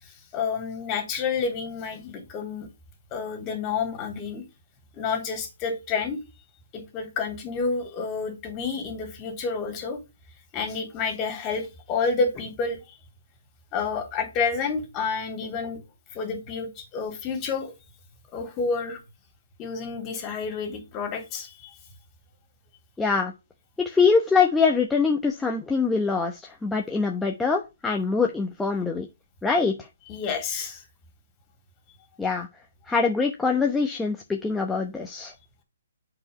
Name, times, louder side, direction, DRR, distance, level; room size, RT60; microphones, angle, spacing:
voice 1, 0.3-2.7 3.1-4.4 4.9-6.2 6.7-10.0 10.5-12.8 13.7-15.8 16.1-17.7 18.3-19.0 19.6-21.7 30.1-30.8, left 5 dB, 25° left, 3.3 m, -29 dB
voice 2, 23.0-23.3 23.8-29.1 29.4-29.7 32.2-32.5 32.9-35.3, left 4 dB, 5° left, 0.9 m, -23 dB
7.8 x 5.0 x 5.4 m
hypercardioid pair, 145°, 0 cm